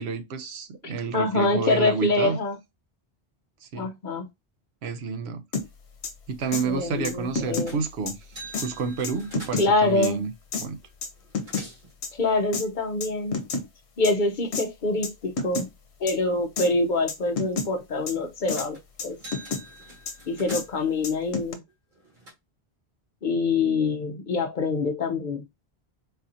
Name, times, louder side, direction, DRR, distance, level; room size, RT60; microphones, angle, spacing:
voice 1, 0.0-2.4 3.6-3.9 4.8-5.4 6.3-8.2 8.6-10.3 10.6-10.8, right 5 dB, 75° right, 0.9 m, -30 dB
voice 2, 0.8-2.6 3.7-4.3 6.6-7.8 9.6-10.2 12.1-13.4 14.0-15.7 16.0-19.2 20.3-21.6 23.2-25.4, left 3 dB, 55° left, 0.7 m, -25 dB
sound 1, 5.5-5.7 6.0-6.1 6.5-6.6 7.0-7.7 8.1-8.2 8.5-8.7 9.0-9.7 10.0-10.1 10.5-10.7 11.0-11.7 12.0-12.1 12.5-12.6 13.0-13.7 14.0-14.1 14.5-14.7 15.0-15.1 15.4-15.7 16.1-16.2 16.6-16.7 17.1-17.7 18.1-18.2 18.5-18.7 19.0-19.6 20.1-20.2 20.5-20.6 21.0-21.5, left 4 dB, 75° left, 1.0 m, -29 dB
sound 2, 7.7-7.9 8.2-9.8 10.8-10.9 11.2-11.9 18.6-18.8 19.1-20.9 21.7-22.3, right 1 dB, 50° right, 1.8 m, -44 dB
4.1 x 2.7 x 2.5 m
omnidirectional pair, 1.1 m